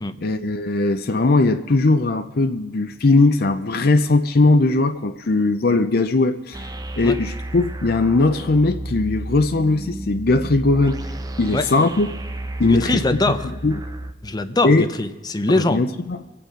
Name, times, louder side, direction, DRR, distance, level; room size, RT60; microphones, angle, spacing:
voice 1, 0.2-6.6 7.0-11.0 11.4-12.1 12.6-13.0 13.4-13.8 14.6-14.9 15.5-16.4, left 2 dB, 60° left, 8 dB, 0.6 m, -19 dB
sound 1, 6.5-14.1, right 1 dB, 20° right, 0.8 m, -32 dB
voice 2, 12.6-13.4 14.2-15.9, left 2 dB, 25° left, 9 dB, 0.7 m, -22 dB
23.5 x 8.7 x 5.1 m, 1.2 s
head